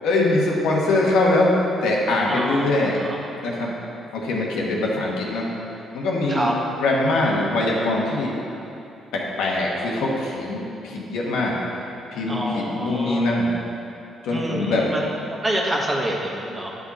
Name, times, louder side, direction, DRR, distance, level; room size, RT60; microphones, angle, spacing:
voice 1, 0.0-3.0 3.4-3.7 4.1-5.5 5.9-6.5 6.8-8.4 9.1-11.6 12.1-13.5 14.2-14.9, left 2 dB, 90° left, -3 dB, 1.2 m, -22 dB
voice 2, 2.3-3.2 6.3-6.5 12.3-13.3 14.3-15.1 15.4-16.8, right 1 dB, 25° right, -2 dB, 1.2 m, -27 dB
9.3 x 5.0 x 4.2 m, 2.8 s
cardioid pair, 90°, 0 cm